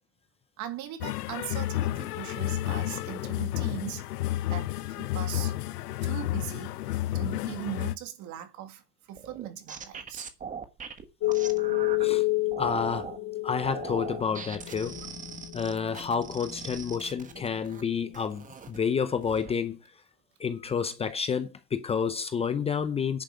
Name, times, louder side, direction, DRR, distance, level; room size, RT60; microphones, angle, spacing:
voice 1, 0.6-4.1 4.5-5.6 6.0-6.8 7.1-8.8 9.1-10.3, right 11 dB, 35° right, 2.0 m, -39 dB
sound 1, 1.0-8.0, left 15 dB, 70° left, 1.0 m, -31 dB
sound 2, 9.2-12.1 12.5-13.2 13.6-17.8 18.1-18.8 19.2-19.5, right 6 dB, 15° right, 1.3 m, -41 dB
sound 3, 11.2-18.1, left 19 dB, 35° left, 3.9 m, -31 dB
voice 2, 12.6-13.2 13.4-15.0 15.5-19.8 20.4-23.2, left 6 dB, 15° left, 0.6 m, -30 dB
10.5 x 5.4 x 7.6 m
supercardioid pair, 130°, 48 cm